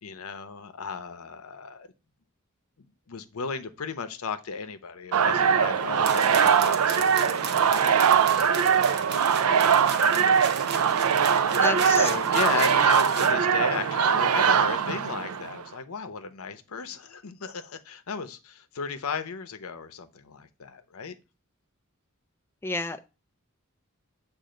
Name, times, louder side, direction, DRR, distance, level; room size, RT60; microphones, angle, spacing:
voice 1, 0.0-1.9 3.1-9.6 11.5-21.1, left 5 dB, 80° left, 0.7 m, -35 dB
sound 1, 5.1-15.6, right 7 dB, 85° right, 0.4 m, -22 dB
sound 2, 6.0-13.3, right 6 dB, 50° right, 0.7 m, -36 dB
voice 2, 11.6-12.1 22.6-23.0, left 3 dB, 10° left, 0.3 m, -29 dB
7.6 x 2.5 x 5.0 m
head